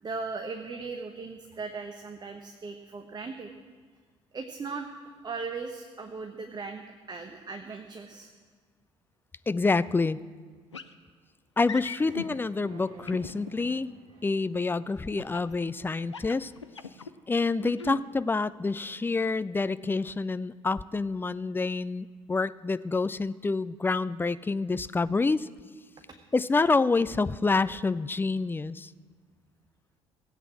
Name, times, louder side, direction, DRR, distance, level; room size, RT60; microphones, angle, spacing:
voice 1, 0.0-3.5 4.3-4.9 5.2-6.8 7.1-8.3, right 4 dB, 30° right, 5 dB, 1.1 m, -38 dB
voice 2, 9.5-10.2 11.6-13.9 14.2-16.5 17.3-25.5 26.3-28.9, left 3 dB, 15° left, 15 dB, 0.4 m, -27 dB
sound 1, 10.7-10.9 11.6-12.3 13.1-13.7 15.2-15.5 16.0-17.1 17.6-18.0, left 6 dB, 85° left, 0.5 m, -39 dB
sound 2, 12.0-15.0, right 4 dB, 55° right, 1.4 m, -52 dB
17.0 x 8.2 x 7.4 m, 1.5 s
figure-of-eight pair, 50°, 15 cm